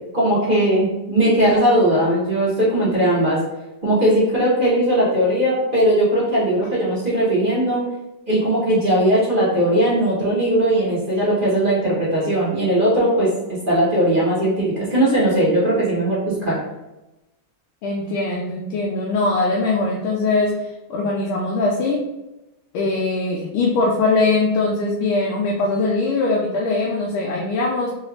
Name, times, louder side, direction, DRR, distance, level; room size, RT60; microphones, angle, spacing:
voice 1, 0.1-3.4 3.8-7.9 8.3-16.6, right 1 dB, 40° right, -9 dB, 0.7 m, -19 dB
voice 2, 17.8-22.1 22.7-27.9, left 3 dB, 80° left, -2 dB, 1.4 m, -21 dB
3.7 x 2.3 x 3.3 m, 0.96 s
omnidirectional pair, 2.4 m